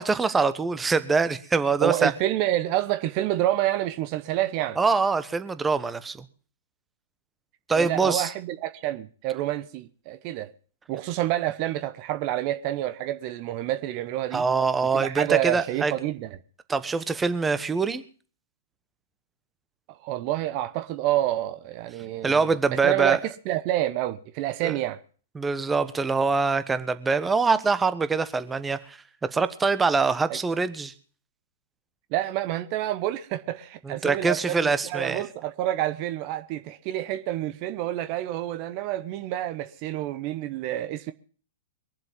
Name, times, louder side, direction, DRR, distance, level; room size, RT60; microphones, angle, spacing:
voice 1, 0.0-2.1 4.8-6.2 7.7-8.3 14.3-15.9 16.7-18.0 22.2-23.2 24.6-24.7 25.3-29.0 29.3-30.9 33.9-35.2, right 4 dB, 10° right, 1.2 m, -24 dB
voice 2, 1.8-4.8 7.7-10.5 10.9-14.4 14.9-16.4 19.9-22.5 22.8-25.0 30.3-30.4 32.1-41.1, right 14 dB, 40° right, 0.9 m, -28 dB
22.5 x 7.7 x 7.3 m
hypercardioid pair, 115°, 0 cm